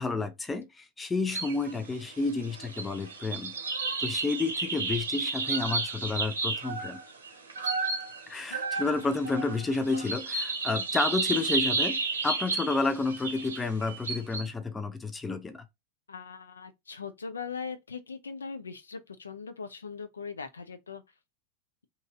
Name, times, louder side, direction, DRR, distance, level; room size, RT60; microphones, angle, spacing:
voice 1, 0.0-3.5 4.0-7.0 8.3-15.6, left 3 dB, 15° left, 0.4 m, -30 dB
sound 1, 1.3-1.7 2.0-14.4, right 4 dB, 70° right, 0.8 m, -32 dB
voice 2, 8.4-8.9 16.1-21.0, left 5 dB, 75° left, 0.4 m, -40 dB
2.9 x 2.6 x 3.5 m
figure-of-eight pair, 90°, 0 cm